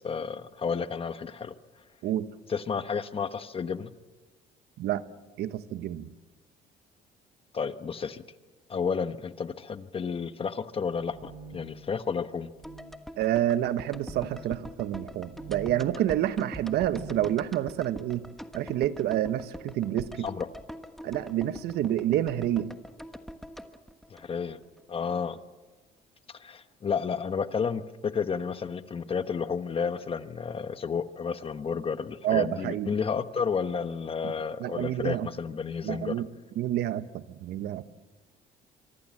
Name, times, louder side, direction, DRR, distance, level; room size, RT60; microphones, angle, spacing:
voice 1, 0.0-1.5 2.5-3.9 7.5-8.2 8.7-12.5 20.2-20.5 24.1-24.6 24.9-25.4 26.3-36.1, left 6 dB, 35° left, 11 dB, 1.2 m, -31 dB
voice 2, 5.4-6.1 13.2-18.3 18.5-20.3 21.0-22.7 32.2-32.9 34.2-34.3 34.6-35.3 35.8-36.3 36.5-37.8, right 12 dB, 75° right, 12 dB, 1.1 m, -28 dB
sound 1, 10.8-11.8 12.5-12.9 13.9-14.3 15.2-15.9 16.6-17.3, right 3 dB, 55° right, 6.6 m, -44 dB
sound 2, 12.6-24.8 25.1-25.2, equal, ahead, 1.3 m, -44 dB
25.0 x 24.0 x 7.6 m, 1.2 s
cardioid pair, 110°, 17 cm